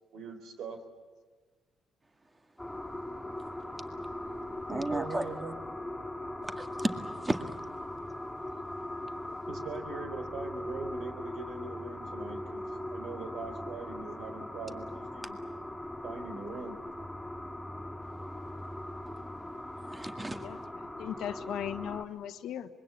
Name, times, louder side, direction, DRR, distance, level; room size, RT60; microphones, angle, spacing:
voice 1, 0.1-0.8 4.7-5.5 9.5-15.4 16.0-16.8, right 4 dB, 70° right, 6 dB, 4.1 m, -42 dB
sound 1, 2.6-22.1, left 1 dB, 5° left, 3.4 m, -40 dB
voice 2, 4.7-5.2 6.6-7.4 19.8-20.5, right 2 dB, 20° right, 7 dB, 1.9 m, -33 dB
voice 3, 20.4-22.7, left 10 dB, 80° left, 9 dB, 1.3 m, -38 dB
25.0 x 22.5 x 8.4 m, 1.4 s
cardioid pair, 90°, 0 cm